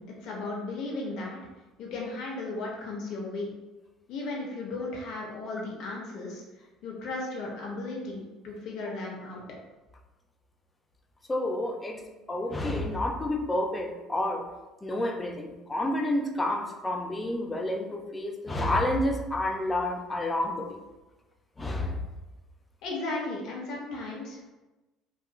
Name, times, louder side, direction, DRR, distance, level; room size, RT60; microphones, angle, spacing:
voice 1, 0.0-1.4 1.8-3.5 4.1-6.4 6.8-9.4 22.8-24.5, left 2 dB, 60° left, -2 dB, 0.7 m, -35 dB
voice 2, 11.3-12.0 12.3-14.5 14.8-20.8 21.6-22.0, left 1 dB, 20° left, 2 dB, 0.5 m, -29 dB
2.8 x 2.3 x 2.3 m, 1.1 s
hypercardioid pair, 60°, 0 cm